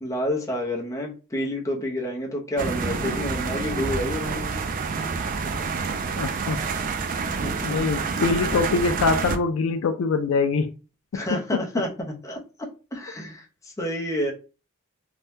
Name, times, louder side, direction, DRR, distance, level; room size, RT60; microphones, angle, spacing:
voice 1, 0.0-4.6 7.4-7.8 11.1-12.4 12.9-14.3, left 1 dB, 15° left, 0.6 m, -29 dB
sound 1, 2.6-9.4, right 4 dB, 40° right, 0.3 m, -28 dB
voice 2, 6.2-6.7 7.6-10.7 11.1-11.2, left 4 dB, 65° left, 0.4 m, -24 dB
2.7 x 2.1 x 3.3 m
head